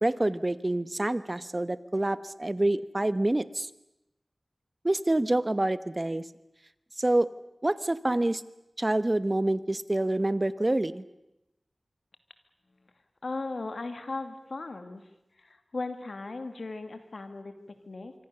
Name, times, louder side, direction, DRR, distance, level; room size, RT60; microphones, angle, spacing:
voice 1, 0.0-3.7 4.8-6.2 7.0-7.3 7.6-8.4 8.8-11.0, right 1 dB, 30° right, 15 dB, 1.1 m, -27 dB
voice 2, 13.2-15.1 15.4-18.1, left 3 dB, 80° left, 8 dB, 2.6 m, -37 dB
26.0 x 24.5 x 6.9 m, 0.89 s
wide cardioid pair, 65°, 0 cm